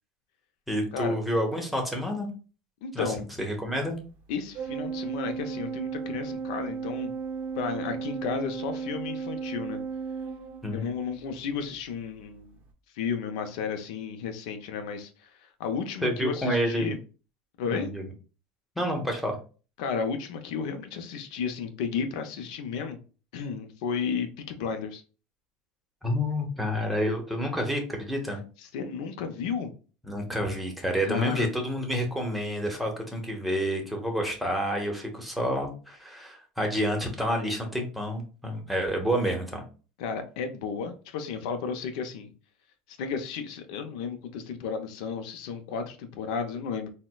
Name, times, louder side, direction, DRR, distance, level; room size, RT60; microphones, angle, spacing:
voice 1, 0.7-2.3 2.9-3.0 3.4-4.0 10.6-10.8 16.0-16.9 17.6-18.0 18.8-19.4 26.0-28.4 30.1-39.6, equal, ahead, 2 dB, 0.9 m, -29 dB
voice 2, 2.8-3.2 4.3-7.1 7.6-9.8 10.7-12.5 12.9-15.1 15.6-17.0 17.6-17.9 19.8-23.0 23.3-25.0 28.6-29.7 31.0-31.5 40.0-42.3 43.0-46.9, left 6 dB, 75° left, 7 dB, 0.5 m, -33 dB
Organ, 4.5-11.1, right 5 dB, 45° right, 0.5 m, -35 dB
4.0 x 2.1 x 2.2 m, 0.36 s
supercardioid pair, 115°, 4 cm